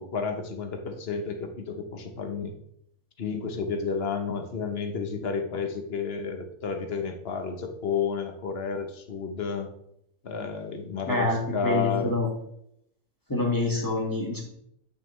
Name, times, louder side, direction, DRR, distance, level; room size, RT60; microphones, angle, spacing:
voice 1, 0.0-2.5 3.2-9.7 10.2-12.2, left 5 dB, 50° left, 6 dB, 1.2 m, -31 dB
voice 2, 11.1-12.3 13.3-14.4, left 2 dB, 15° left, -3 dB, 1.9 m, -26 dB
9.0 x 5.9 x 3.3 m, 0.74 s
omnidirectional pair, 1.4 m